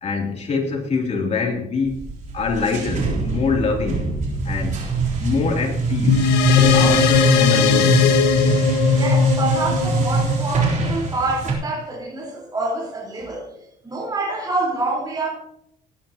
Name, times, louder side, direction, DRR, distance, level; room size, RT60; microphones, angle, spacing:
voice 1, 0.0-2.0 2.3-4.0 4.4-4.8 5.2-6.2 6.6-8.0 13.3-13.5, left 4 dB, 40° left, 1 dB, 3.0 m, -24 dB
sound 1, 1.8-11.5, right 4 dB, 45° right, 3.6 m, -24 dB
sound 2, 6.1-10.9, left 6 dB, 85° left, 1.5 m, -18 dB
voice 2, 8.9-13.5 13.8-15.3, right 2 dB, 25° right, -4 dB, 4.2 m, -26 dB
18.0 x 9.8 x 2.9 m, 0.73 s
cardioid pair, 110°, 17 cm